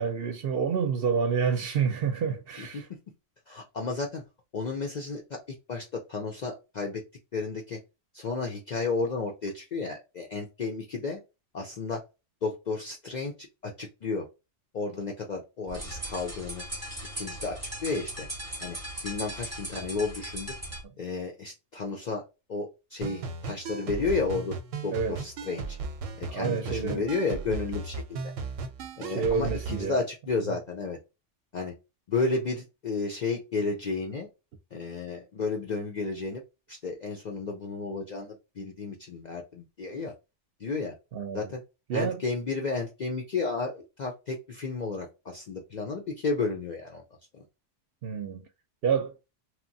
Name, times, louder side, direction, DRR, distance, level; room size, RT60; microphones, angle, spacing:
voice 1, 0.0-2.9 24.9-25.2 26.3-27.0 29.0-29.9 41.1-41.5 41.9-42.2 48.0-48.4 48.8-49.2, right 6 dB, 60° right, 0.7 m, -28 dB
voice 2, 2.6-3.0 3.5-4.2 4.5-5.4 5.7-7.0 7.3-7.8 8.1-11.2 11.5-12.0 12.4-14.3 14.7-16.6 17.1-18.3 18.6-18.8 19.0-20.5 21.0-22.2 22.5-24.6 24.8-25.8 26.2-28.2 29.0-31.0 31.5-31.7 32.1-34.3 34.7-36.4 36.7-40.1 40.6-40.9 41.3-41.6 41.9-47.0 47.3-47.4, left 4 dB, 60° left, 0.5 m, -32 dB
sound 1, 15.7-20.8, right 1 dB, 15° right, 0.8 m, -38 dB
sound 2, 23.0-29.9, right 4 dB, 90° right, 1.0 m, -36 dB
2.9 x 2.1 x 2.6 m
omnidirectional pair, 1.3 m